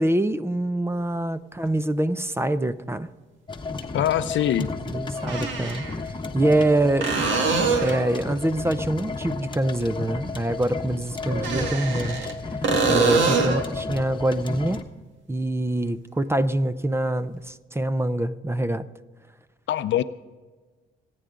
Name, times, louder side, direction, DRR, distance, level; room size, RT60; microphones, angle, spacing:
voice 1, 0.0-3.1 4.8-7.1 7.8-12.6 12.9-14.8 15.3-18.8, right 1 dB, 10° right, 13 dB, 0.7 m, -25 dB
sound 1, 1.7-1.8 3.8-3.9 5.2-6.0 7.0-8.1 11.3-12.3 12.6-13.7 17.3-17.4, right 4 dB, 70° right, 2.0 m, -24 dB
sound 2, 3.5-14.8, left 3 dB, 25° left, 1.2 m, -33 dB
voice 2, 3.9-4.7 19.7-20.0, left 11 dB, 70° left, 12 dB, 0.7 m, -23 dB
25.5 x 9.4 x 3.8 m, 1.3 s
cardioid pair, 90°, 20 cm